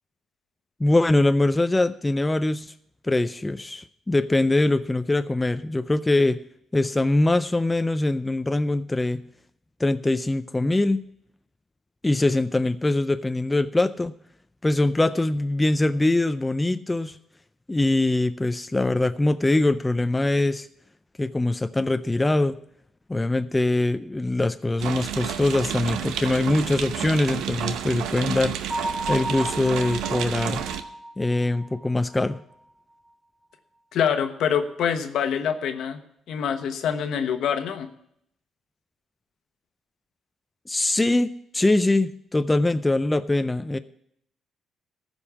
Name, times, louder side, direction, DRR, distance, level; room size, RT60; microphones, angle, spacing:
voice 1, 0.8-2.7 3.0-6.4 6.7-9.2 9.8-11.0 12.0-14.1 14.6-17.2 17.7-20.7 21.2-22.6 23.1-28.6 29.1-30.6 31.2-32.4 40.7-43.8, left 2 dB, 15° left, 11 dB, 0.4 m, -23 dB
sound 1, 24.8-30.8, right 9 dB, 90° right, 0.7 m, -30 dB
Bell, 28.7-32.4, right 1 dB, 5° right, 2.1 m, -34 dB
voice 2, 33.9-36.0 36.3-37.9, left 8 dB, 75° left, 8 dB, 1.1 m, -25 dB
14.5 x 5.4 x 7.1 m, 0.72 s
cardioid pair, 90°, 0 cm